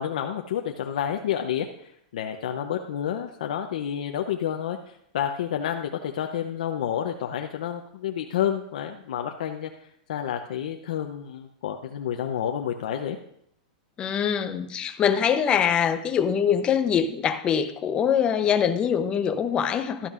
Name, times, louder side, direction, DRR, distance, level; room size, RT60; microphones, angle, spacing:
voice 1, 0.0-9.7 10.1-13.2, left 9 dB, 80° left, 4 dB, 0.7 m, -29 dB
voice 2, 14.0-20.1, left 8 dB, 20° left, 8 dB, 0.7 m, -23 dB
12.5 x 10.5 x 2.5 m, 0.72 s
supercardioid pair, 150°, 4 cm